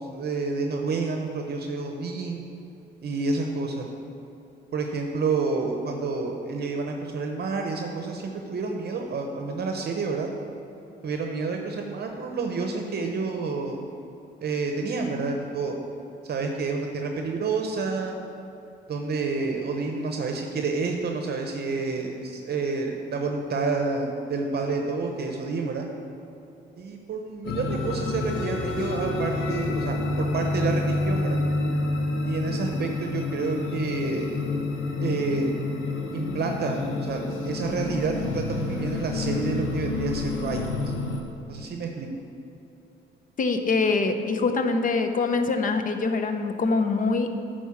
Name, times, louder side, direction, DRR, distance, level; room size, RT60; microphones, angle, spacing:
voice 1, 0.0-2.4 3.0-3.9 4.7-10.3 11.0-13.9 14.4-15.8 16.2-18.2 18.9-25.9 26.8-31.4 32.2-34.4 35.0-35.6 36.1-40.9 41.5-42.1, right 4 dB, 55° right, 3 dB, 0.8 m, -29 dB
sound 1, 27.4-41.2, left 2 dB, 80° left, 0.9 m, -28 dB
voice 2, 43.4-47.3, left 4 dB, 45° left, 7 dB, 0.7 m, -24 dB
9.2 x 4.4 x 5.8 m, 2.8 s
cardioid pair, 90°, 20 cm